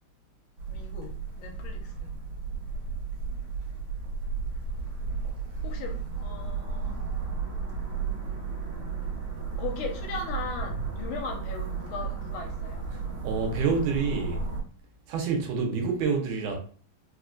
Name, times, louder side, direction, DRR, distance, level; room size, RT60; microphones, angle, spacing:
sound 1, 0.6-14.6, right 5 dB, 60° right, 1.7 m, -34 dB
voice 1, 0.7-1.1 1.4-2.2 3.3-3.5 5.6-7.0 9.6-12.9, left 5 dB, 80° left, 2.1 m, -38 dB
voice 2, 13.2-14.4 15.1-16.6, right 5 dB, 85° right, 2.2 m, -27 dB
4.9 x 2.5 x 2.2 m
omnidirectional pair, 3.5 m